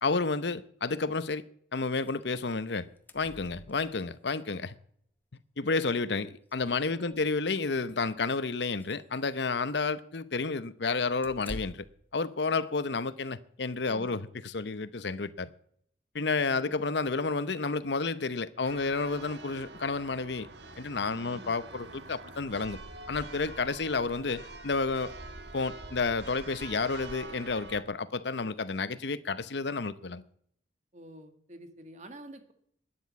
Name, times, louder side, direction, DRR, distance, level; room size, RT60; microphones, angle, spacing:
voice 1, 0.0-1.4 1.7-2.9 3.1-4.7 5.3-11.8 12.1-15.5 16.1-20.5 20.8-22.8 23.1-25.1 25.5-30.2, left 4 dB, 70° left, 0.8 m, -31 dB
sound 1, 2.1-2.2 2.5-2.6 2.8-4.1 5.4-5.5 5.8-5.9 6.4-7.4 7.9-8.1 8.5-9.1 11.2-12.1, left 1 dB, 10° left, 0.9 m, -47 dB
voice 2, 6.9-7.2 13.9-14.1 16.5-16.8 21.1-21.5 30.9-32.5, right 1 dB, 40° right, 1.9 m, -48 dB
Church bell, 18.6-27.8, right 2 dB, 65° right, 1.5 m, -45 dB
12.5 x 9.6 x 8.3 m
head